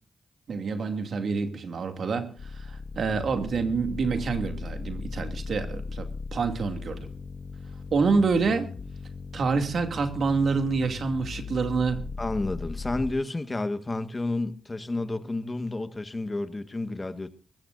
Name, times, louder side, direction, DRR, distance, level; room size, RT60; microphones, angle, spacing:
voice 1, 0.5-7.1 7.9-8.7 9.3-12.1, right 4 dB, 65° right, 2.5 m, -27 dB
sound 1, 2.4-13.1, left 4 dB, 60° left, 1.8 m, -38 dB
voice 2, 12.2-17.3, left 2 dB, 30° left, 1.5 m, -30 dB
22.0 x 16.0 x 2.6 m
supercardioid pair, 50°, 0 cm